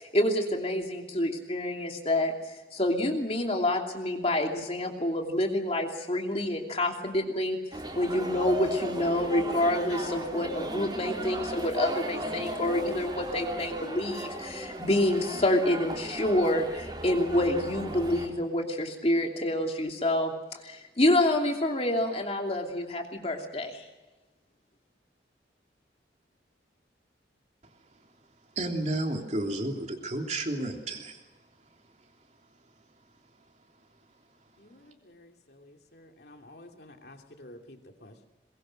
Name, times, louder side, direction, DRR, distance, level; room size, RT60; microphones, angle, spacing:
voice 1, 0.0-23.9, left 1 dB, 35° left, 2 dB, 2.9 m, -28 dB
sound 1, 7.7-18.3, right 1 dB, 25° right, 4.0 m, -36 dB
voice 2, 28.6-31.2, right 1 dB, 40° right, 2 dB, 3.2 m, -31 dB
voice 3, 34.6-38.3, left 1 dB, 60° left, 3 dB, 2.8 m, -51 dB
22.5 x 22.0 x 6.4 m, 1.1 s
head